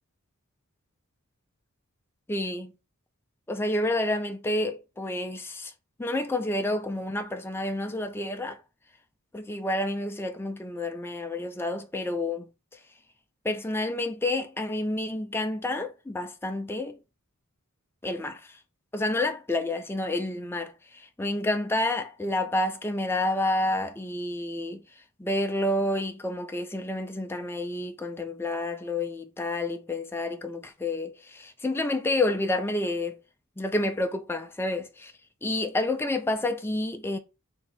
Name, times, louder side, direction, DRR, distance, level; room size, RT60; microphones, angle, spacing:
voice 1, 2.3-2.7 3.5-5.7 6.0-8.6 9.3-12.5 13.4-17.0 18.0-18.6 18.9-24.8 25.2-33.2 33.6-35.1 35.4-37.2, left 2 dB, 10° left, 0.4 m, -29 dB
3.4 x 2.8 x 4.1 m
head